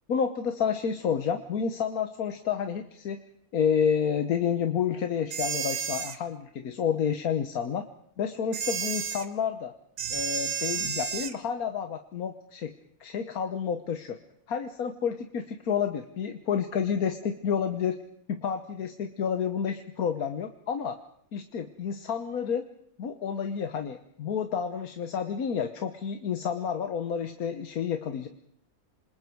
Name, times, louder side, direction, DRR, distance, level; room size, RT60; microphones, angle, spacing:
voice 1, 0.1-3.2 3.5-7.8 8.2-9.7 10.1-12.7 13.0-14.2 14.5-18.0 18.3-21.0 21.3-22.7 23.0-28.3, left 7 dB, 90° left, 7 dB, 1.6 m, -30 dB
sound 1, 5.3-6.2 8.5-9.3 10.0-11.4, right 7 dB, 80° right, 1.6 m, -31 dB
27.5 x 26.5 x 4.7 m, 0.70 s
omnidirectional pair, 1.5 m